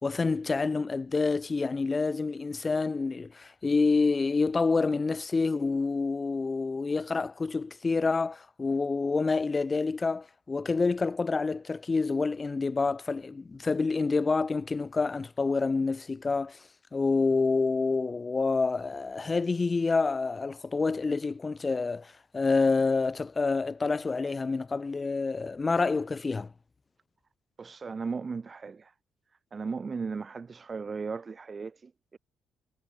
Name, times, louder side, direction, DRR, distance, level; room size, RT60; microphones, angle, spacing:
voice 1, 0.0-16.6 16.9-26.5, left 4 dB, 20° left, 2.9 m, -28 dB
voice 2, 27.6-28.9 29.5-32.2, right 5 dB, 25° right, 5.1 m, -36 dB
cardioid pair, 170°, 0 cm